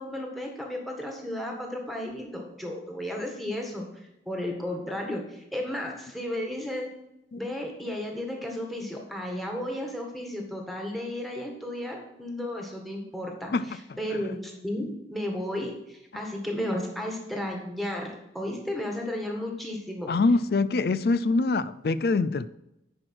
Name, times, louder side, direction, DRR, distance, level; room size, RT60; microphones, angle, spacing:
voice 1, 0.0-3.8 4.2-6.9 7.4-20.1, left 1 dB, ahead, 1.6 m, -33 dB
voice 2, 13.5-14.2 20.1-22.5, left 3 dB, 60° left, 0.4 m, -25 dB
10.0 x 4.9 x 6.1 m
head